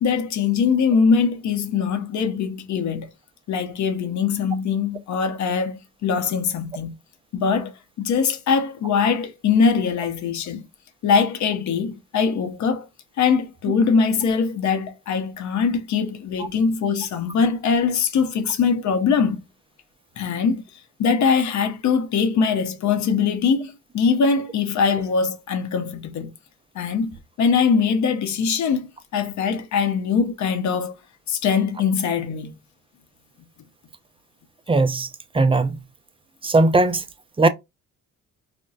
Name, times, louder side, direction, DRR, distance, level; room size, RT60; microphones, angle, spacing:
voice 1, 0.0-3.1 3.5-6.9 7.3-7.7 8.0-10.6 11.0-12.9 13.2-19.4 20.2-20.6 21.0-26.3 26.7-28.9 29.1-30.9 31.3-32.5, left 5 dB, 70° left, 0.8 m, -22 dB
voice 2, 34.7-35.1 35.3-35.8 36.4-37.0 37.4-37.5, right 2 dB, 20° right, 0.5 m, -18 dB
4.2 x 2.2 x 2.4 m
cardioid pair, 90°, 30 cm